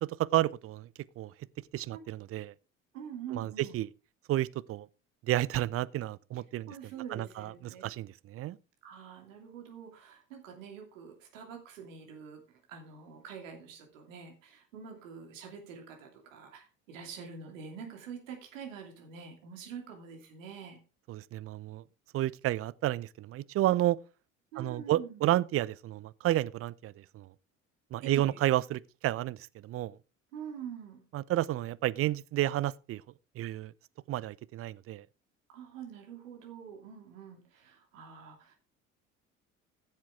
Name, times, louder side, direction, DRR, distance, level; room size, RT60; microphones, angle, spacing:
voice 1, 0.0-0.9 1.2-1.3 1.7-2.5 3.3-3.9 4.3-4.9 5.3-6.7 7.1-8.6 21.1-21.8 22.1-24.0 24.6-27.3 27.9-29.4 29.6-29.9 31.1-33.0 33.4-33.7 34.1-35.0, right 14 dB, 35° right, 0.5 m, -31 dB
voice 2, 2.9-3.7 6.7-7.9 8.8-20.8 24.5-25.3 28.0-28.4 30.3-31.0 35.5-38.5, right 7 dB, 70° right, 2.9 m, -45 dB
15.0 x 7.5 x 3.6 m
figure-of-eight pair, 60°, 40 cm